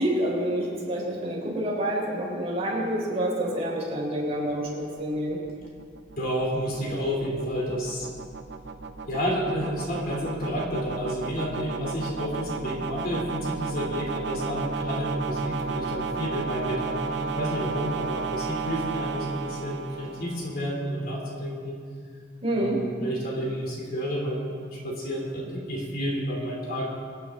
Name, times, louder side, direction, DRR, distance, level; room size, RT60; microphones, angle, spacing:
voice 1, 0.0-5.4 22.4-22.8, right 1 dB, 35° right, -5 dB, 3.9 m, -28 dB
sound 1, 4.5-20.7, right 4 dB, 65° right, 0.7 m, -34 dB
voice 2, 6.2-8.1 9.1-21.8 22.5-26.9, equal, 50° left, -2 dB, 3.0 m, -30 dB
25.0 x 9.4 x 3.7 m, 2.1 s
head